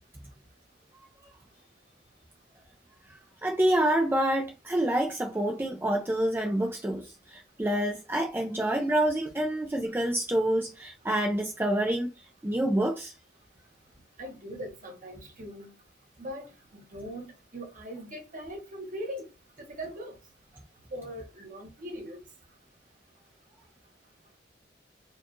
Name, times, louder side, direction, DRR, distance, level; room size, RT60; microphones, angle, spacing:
voice 1, 3.4-7.1 7.3-12.1 12.4-13.1, right 1 dB, 10° right, 0.5 m, -27 dB
voice 2, 14.2-15.7 16.2-19.3 19.6-20.1 20.9-22.2, equal, 45° right, 1.0 m, -40 dB
4.4 x 2.4 x 3.0 m
head